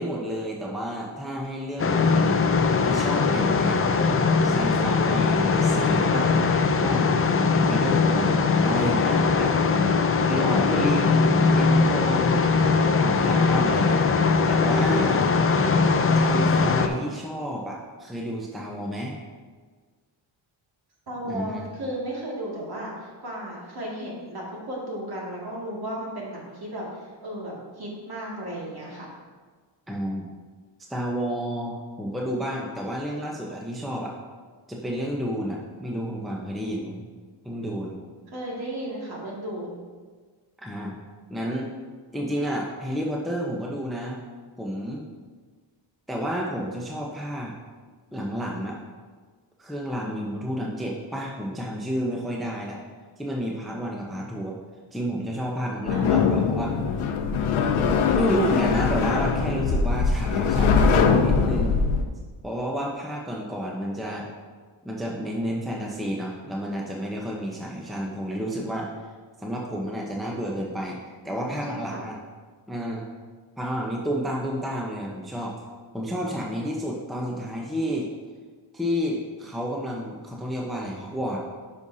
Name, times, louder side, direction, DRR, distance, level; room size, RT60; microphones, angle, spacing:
voice 1, 0.0-2.4 2.8-4.0 4.4-6.3 6.8-7.1 7.5-9.5 10.2-12.4 12.9-14.0 14.5-15.3 16.1-19.2 21.2-21.7 29.9-30.3 30.9-34.1 34.7-37.0 37.4-38.0 40.6-41.0 41.3-41.7 42.1-44.2 44.6-45.0 46.1-47.5 48.1-48.8 49.6-52.8 53.2-54.5 54.9-56.7 58.1-61.8 62.4-64.3 64.8-68.9 69.4-71.0 71.2-72.2 72.7-73.0 73.6-75.6 75.9-78.1 78.7-81.4, equal, ahead, -2 dB, 0.7 m, -30 dB
sound 1, 1.8-16.9, left 4 dB, 30° left, 0.4 m, -21 dB
voice 2, 21.1-29.1 38.3-39.8 55.9-56.8 71.3-72.1, right 1 dB, 50° right, -4 dB, 2.3 m, -35 dB
sound 2, 55.9-62.0, left 5 dB, 80° left, 0.7 m, -22 dB
9.8 x 5.6 x 2.7 m, 1.5 s
cardioid pair, 105°, 48 cm